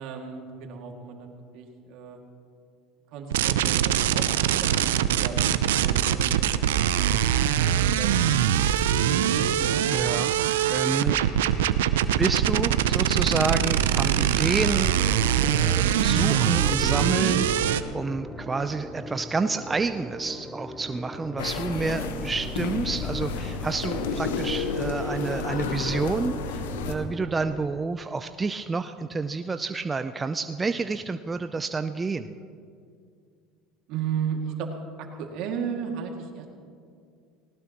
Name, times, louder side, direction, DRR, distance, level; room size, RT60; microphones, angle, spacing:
voice 1, 0.0-2.2 3.1-4.8 5.1-6.5 7.4-9.5 33.9-36.5, right 7 dB, 65° right, 2 dB, 2.3 m, -35 dB
sound 1, 3.3-17.8, right 10 dB, 85° right, 0.6 m, -23 dB
voice 2, 9.9-11.2 12.2-15.0 15.8-32.4, right 4 dB, 20° right, 9 dB, 0.5 m, -29 dB
sound 2, 15.0-27.9, equal, 5° left, 1.0 m, -39 dB
sound 3, 21.4-26.9, left 5 dB, 85° left, 1.1 m, -31 dB
19.0 x 18.5 x 3.0 m, 2.3 s
hypercardioid pair, 85°, 0 cm